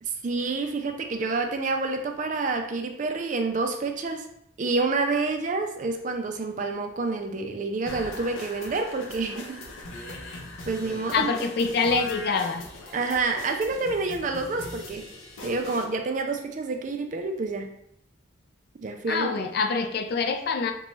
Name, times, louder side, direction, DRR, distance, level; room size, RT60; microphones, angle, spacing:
voice 1, 0.0-4.2 4.6-9.6 10.7-11.3 12.9-15.1 15.4-17.7 18.8-19.4, right 3 dB, 40° right, 5 dB, 0.3 m, -28 dB
sound 1, 7.9-15.9, left 2 dB, 85° left, 0.7 m, -40 dB
voice 2, 11.1-12.6 19.1-20.7, left 4 dB, 50° left, 5 dB, 0.3 m, -25 dB
3.9 x 2.2 x 3.1 m, 0.74 s
head